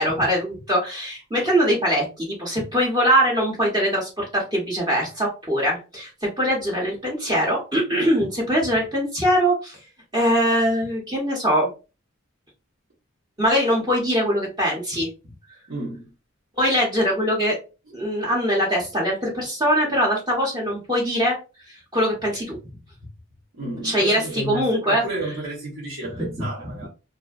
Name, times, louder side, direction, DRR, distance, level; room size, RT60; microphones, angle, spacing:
voice 1, 0.0-6.1 6.4-9.8 10.1-11.7 13.4-15.1 16.6-17.6 17.9-21.4 21.9-22.6 23.8-25.0, equal, 20° right, 0.7 m, -22 dB
voice 2, 15.7-16.1 23.5-26.9, right 2 dB, 75° right, 0.9 m, -32 dB
2.5 x 2.1 x 2.3 m
head